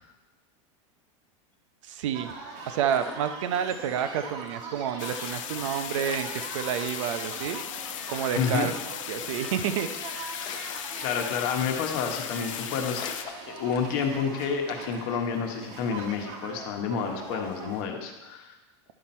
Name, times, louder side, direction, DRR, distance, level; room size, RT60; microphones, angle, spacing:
voice 1, 1.8-2.3 2.7-7.6 8.1-8.7 9.1-9.9, right 9 dB, 75° right, 10 dB, 0.7 m, -29 dB
sound 1, 2.1-17.8, right 4 dB, 45° right, 1.3 m, -42 dB
sound 2, 2.9-4.1 4.4-4.5 5.5-5.6 5.9-7.0 7.5-7.6 7.8-7.9 8.3-9.8 10.3-11.6 11.9-12.2 12.5-12.6 12.8-14.2 14.7-15.0, left 7 dB, 25° left, 0.6 m, -43 dB
sound 3, 5.0-13.2, left 11 dB, 90° left, 0.6 m, -37 dB
voice 2, 8.4-8.7 10.6-10.7 11.0-13.0 13.5-18.6, left 6 dB, 45° left, 3 dB, 1.1 m, -29 dB
10.0 x 5.9 x 4.3 m, 1.1 s
supercardioid pair, 170°, 16 cm